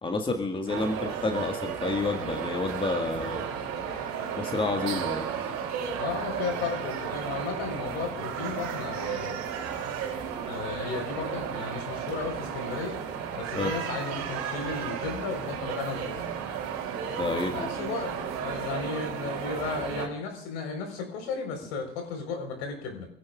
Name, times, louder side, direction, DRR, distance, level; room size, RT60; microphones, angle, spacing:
voice 1, 0.0-3.4 4.3-5.3 13.5-13.7 17.2-17.7, left 3 dB, 15° left, 3 dB, 1.7 m, -29 dB
sound 1, 0.7-20.1, right 7 dB, 50° right, 3.3 m, -34 dB
voice 2, 6.0-9.3 10.4-13.0 13.3-16.2 17.5-18.1 18.4-23.1, left 4 dB, 65° left, 3 dB, 4.3 m, -34 dB
27.5 x 16.5 x 2.4 m, 0.67 s
figure-of-eight pair, 75°, 36 cm